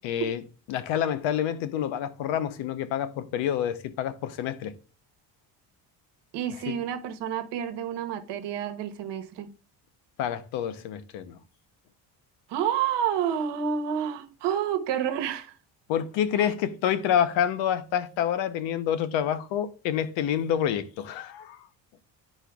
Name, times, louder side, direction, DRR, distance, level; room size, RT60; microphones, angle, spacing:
voice 1, 0.0-0.4 0.7-4.7 6.7-6.8 10.2-11.4 15.9-21.7, left 9 dB, 85° left, 0.9 m, -28 dB
voice 2, 6.3-9.5 12.5-15.5 16.4-16.5, right 9 dB, 65° right, 1.1 m, -29 dB
11.5 x 4.4 x 2.3 m
cardioid pair, 125°, 44 cm